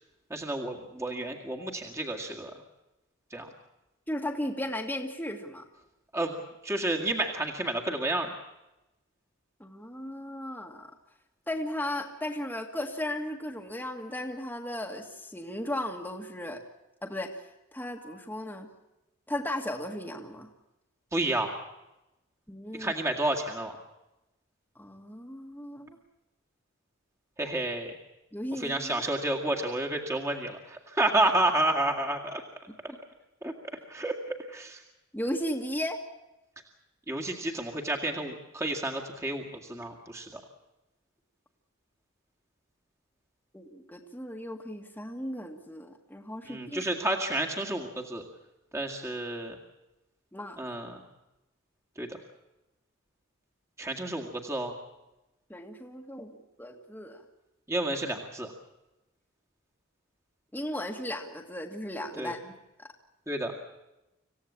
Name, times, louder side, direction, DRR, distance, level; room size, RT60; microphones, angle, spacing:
voice 1, 0.3-2.5 3.3-3.5 6.1-6.3 6.6-8.3 21.1-21.5 22.7-23.8 27.4-27.9 28.6-32.4 32.8-32.9 33.4-33.5 33.9-34.1 34.5-34.8 37.1-40.4 46.5-48.2 48.7-49.6 50.6-51.0 52.0-52.1 53.8-54.7 57.7-58.5 62.2-62.3 63.3-63.5, right 2 dB, 15° right, 0 dB, 2.0 m, -30 dB
voice 2, 4.1-5.6 9.6-10.9 11.5-16.6 17.0-18.7 19.3-20.5 22.5-22.9 24.8-26.0 28.3-29.0 35.1-36.0 43.5-46.9 50.3-50.6 55.5-57.2 60.5-62.5 62.8-62.9, left 1 dB, 10° left, 2 dB, 1.8 m, -36 dB
26.5 x 16.0 x 8.6 m, 0.97 s
head